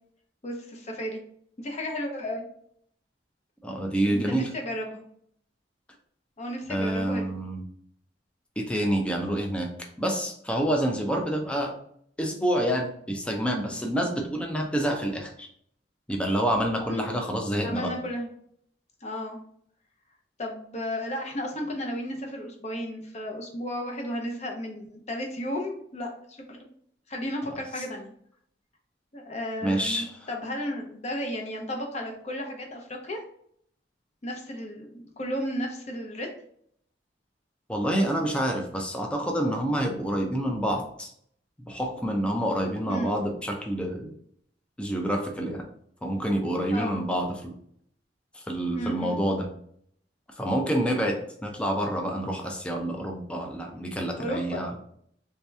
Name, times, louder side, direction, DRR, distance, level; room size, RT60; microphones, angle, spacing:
voice 1, 0.4-1.2 1.6-2.4 4.1-5.0 6.4-7.3 16.9-17.2 17.6-18.3 19.0-19.4 20.4-26.6 27.1-28.1 29.1-33.2 34.2-36.3 42.9-43.2 46.7-47.0 48.7-49.2 54.2-54.6, equal, 40° left, 2 dB, 0.8 m, -33 dB
voice 2, 3.6-4.5 6.7-7.6 8.6-9.7 10.0-11.7 12.2-15.5 16.1-17.9 29.6-30.3 37.7-41.1 41.6-44.1 44.8-45.7 46.0-47.5 48.3-49.5 50.4-54.8, right 1 dB, 5° left, 1 dB, 0.5 m, -28 dB
3.4 x 2.9 x 3.2 m, 0.66 s
head